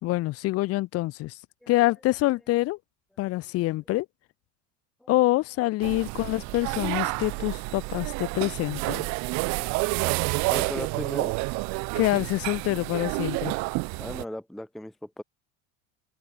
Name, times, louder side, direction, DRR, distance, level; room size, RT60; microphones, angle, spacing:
voice 1, 0.0-1.4 1.7-2.8 3.2-4.1 5.1-9.1 12.0-13.6, left 18 dB, 45° left, 1.2 m, -26 dB
sound 1, 5.8-14.2, right 28 dB, 60° right, 1.0 m, -29 dB
voice 2, 10.5-11.3 14.0-15.2, left 1 dB, ahead, 0.6 m, -37 dB
supercardioid pair, 130°, 32 cm